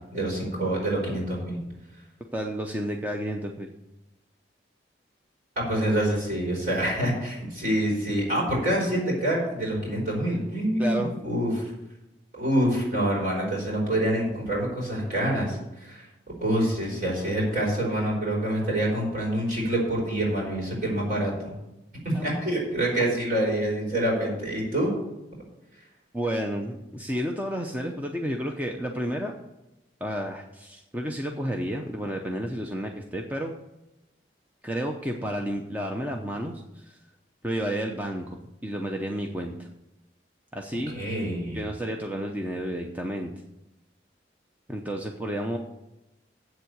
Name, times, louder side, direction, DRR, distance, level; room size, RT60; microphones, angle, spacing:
voice 1, 0.1-1.6 5.6-11.7 12.3-16.0 16.4-21.5 22.0-24.9 40.9-41.6, right 1 dB, 50° right, -3 dB, 4.7 m, -26 dB
voice 2, 2.3-3.7 10.8-11.2 22.1-22.2 26.1-29.4 30.0-33.5 34.6-37.0 37.4-39.7 40.5-40.9 41.5-43.3 44.7-45.6, equal, 10° right, 2 dB, 0.6 m, -31 dB
7.9 x 7.4 x 8.2 m, 0.95 s
head